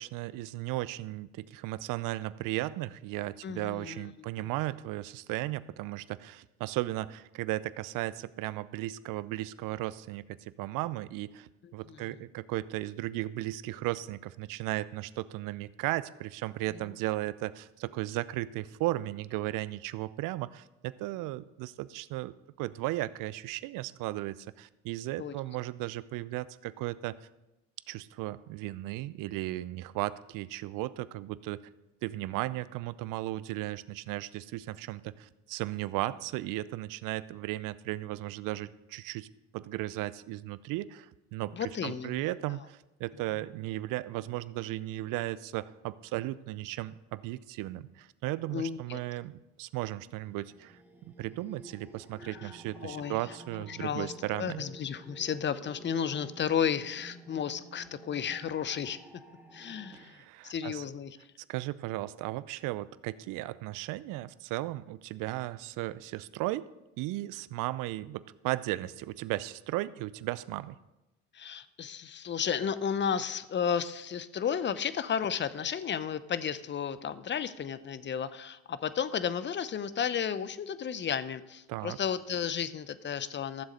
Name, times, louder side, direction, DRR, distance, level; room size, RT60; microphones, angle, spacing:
voice 1, 0.0-27.2 27.9-31.6 32.0-39.3 39.5-54.6 59.9-60.8 61.5-66.7 67.0-70.8 81.7-82.0, right 17 dB, 60° right, 18 dB, 0.6 m, -36 dB
voice 2, 3.4-4.5 11.6-12.1 16.7-16.8 25.2-25.3 41.5-42.2 42.5-42.6 48.5-49.0 52.2-52.5 52.8-53.2 53.7-59.0 59.5-61.2 71.3-83.6, left 8 dB, 30° left, 15 dB, 0.7 m, -33 dB
sound 1, 49.9-60.0, right 2 dB, 5° right, 1.9 m, -52 dB
14.0 x 7.4 x 5.3 m, 0.97 s
hypercardioid pair, 60°, 38 cm